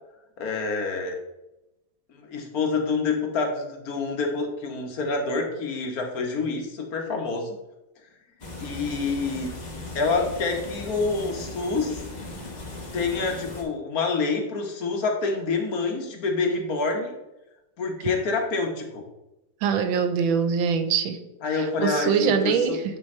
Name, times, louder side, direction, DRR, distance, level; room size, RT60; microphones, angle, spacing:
voice 1, 0.4-1.2 2.1-7.6 8.6-9.5 9.9-12.0 12.9-17.1 17.8-19.0 21.4-22.8, left 4 dB, 55° left, 2 dB, 1.3 m, -27 dB
sound 1, 8.4-13.6, left 2 dB, 35° left, 0.8 m, -37 dB
voice 2, 19.6-21.2 21.8-22.8, right 6 dB, 85° right, 9 dB, 1.4 m, -23 dB
9.0 x 3.4 x 4.3 m, 0.95 s
omnidirectional pair, 2.1 m